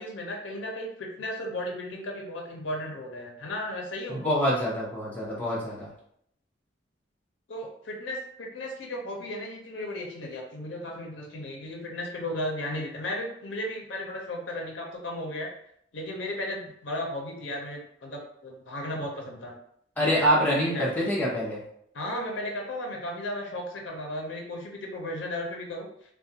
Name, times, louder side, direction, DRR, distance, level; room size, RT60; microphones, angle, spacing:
voice 1, 0.0-4.2 7.5-15.5 15.9-19.5 20.0-21.1 21.9-25.9, left 1 dB, 75° left, 1 dB, 0.5 m, -35 dB
voice 2, 4.1-5.9 20.0-21.6, equal, 10° left, -6 dB, 0.6 m, -26 dB
2.3 x 2.1 x 2.7 m, 0.71 s
head